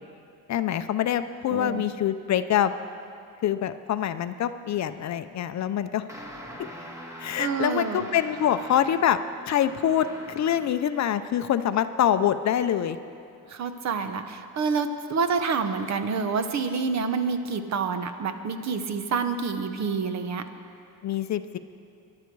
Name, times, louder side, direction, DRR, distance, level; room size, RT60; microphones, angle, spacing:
voice 1, 0.5-2.7 3.4-6.0 6.6-6.7 7.2-9.2 9.5-13.0 21.0-21.6, left 10 dB, 50° left, 11 dB, 0.5 m, -25 dB
voice 2, 1.5-1.8 7.4-8.1 13.5-20.5, right 5 dB, 45° right, 9 dB, 0.9 m, -28 dB
sound 1, 6.1-10.9, equal, 10° right, 1.5 m, -43 dB
21.0 x 11.5 x 4.6 m, 2.4 s
cardioid pair, 155°, 37 cm